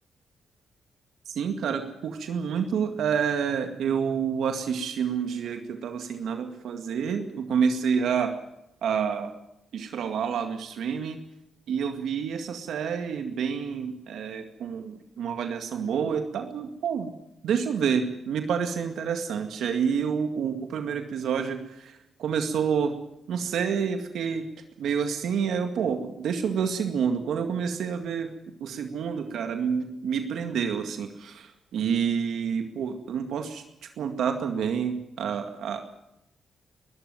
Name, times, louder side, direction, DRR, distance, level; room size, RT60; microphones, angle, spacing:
voice 1, 1.3-8.3 8.8-9.3 9.7-11.2 11.7-17.1 17.4-23.0 23.3-24.5 24.8-28.3 28.6-33.6 34.0-35.8, right 7 dB, 80° right, 6 dB, 2.1 m, -28 dB
22.0 x 13.5 x 9.2 m, 0.84 s
cardioid pair, 70°, 0 cm